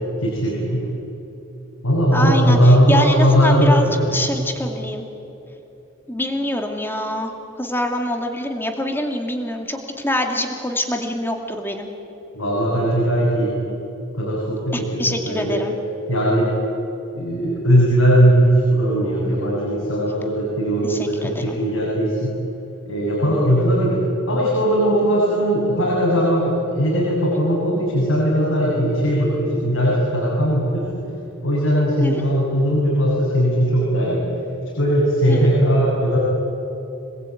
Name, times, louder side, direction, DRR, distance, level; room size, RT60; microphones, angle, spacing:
voice 1, 0.2-0.9 1.8-4.2 12.3-13.5 14.2-15.6 16.1-16.5 17.2-22.3 22.9-24.0 24.3-31.0 31.4-34.2 34.8-36.2, equal, 85° left, -5 dB, 7.6 m, -18 dB
voice 2, 2.1-5.1 6.1-7.3 7.6-11.9 14.7-15.7 20.8-21.6 32.0-32.2 35.3-35.5, left 1 dB, 10° left, 3 dB, 2.4 m, -25 dB
26.5 x 20.5 x 9.3 m, 2.9 s
head